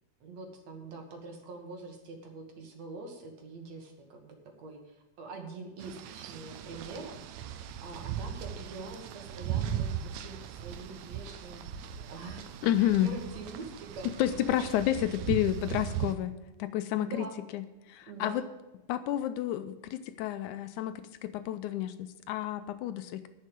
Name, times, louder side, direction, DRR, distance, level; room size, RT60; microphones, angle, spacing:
voice 1, 0.2-9.9 10.2-14.7 16.4-16.6 17.0-17.4 18.1-18.4, right 3 dB, 60° right, 3 dB, 2.8 m, -45 dB
sound 1, 5.8-16.2, right 9 dB, 90° right, 2.2 m, -38 dB
voice 2, 12.6-13.1 14.2-17.1 17.9-18.4 18.9-23.3, left 12 dB, 80° left, 11 dB, 2.0 m, -30 dB
11.0 x 6.6 x 8.9 m, 1.0 s
omnidirectional pair, 3.6 m